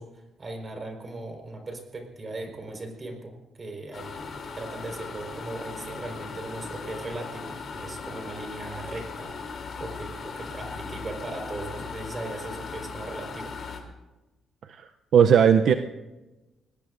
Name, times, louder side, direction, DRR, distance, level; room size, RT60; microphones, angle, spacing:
voice 1, 0.0-13.5, right 2 dB, 30° right, 3 dB, 4.5 m, -38 dB
sound 1, 3.9-13.8, left 5 dB, 55° left, 3.2 m, -38 dB
voice 2, 14.7-15.7, right 8 dB, 70° right, 7 dB, 0.6 m, -18 dB
26.0 x 20.0 x 2.6 m, 1.1 s
cardioid pair, 105°, 0 cm